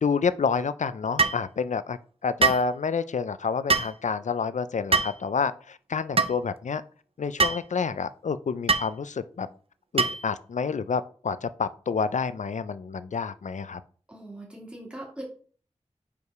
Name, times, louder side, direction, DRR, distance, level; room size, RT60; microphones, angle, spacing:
voice 1, 0.0-6.8 7.2-9.5 9.9-13.8, left 5 dB, 80° left, 0.4 m, -28 dB
sound 1, 1.2-1.4 2.4-2.7 3.7-3.9 4.9-5.2 6.2-6.3 7.4-7.6 8.7-8.9 10.0-10.3, right 4 dB, 50° right, 0.5 m, -23 dB
voice 2, 14.1-15.2, right 1 dB, 10° right, 2.6 m, -41 dB
5.1 x 4.8 x 4.6 m
wide cardioid pair, 60°, 12 cm